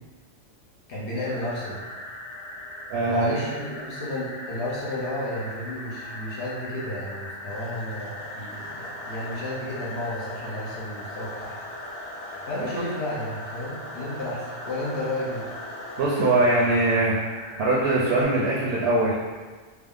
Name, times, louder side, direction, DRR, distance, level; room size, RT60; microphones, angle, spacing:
voice 1, 0.9-1.8 3.1-11.6 12.4-15.4, left 1 dB, 60° left, -6 dB, 0.9 m, -32 dB
sound 1, 1.2-18.2, left 1 dB, 40° left, 0.5 m, -40 dB
voice 2, 2.9-3.4 16.0-17.1 17.6-19.1, right 2 dB, 60° right, -5 dB, 0.7 m, -22 dB
sound 2, 7.5-17.0, left 2 dB, 80° left, 1.1 m, -41 dB
3.4 x 2.0 x 3.5 m, 1.4 s
omnidirectional pair, 1.4 m